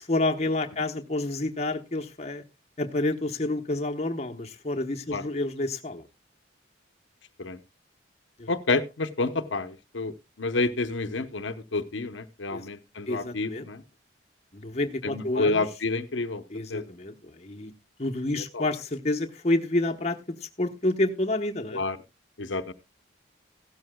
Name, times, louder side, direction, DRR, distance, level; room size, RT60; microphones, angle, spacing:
voice 1, 0.0-2.4 2.8-6.0 8.4-8.5 12.5-12.7 13.1-13.7 14.5-15.6 16.5-17.7 18.0-21.8, left 2 dB, 35° left, 4 dB, 0.9 m, -29 dB
voice 2, 8.5-13.8 15.0-16.4 16.7-16.9 18.5-18.6 21.7-22.0 22.4-22.7, left 3 dB, 75° left, 10 dB, 0.9 m, -29 dB
16.0 x 12.5 x 2.2 m, 0.25 s
head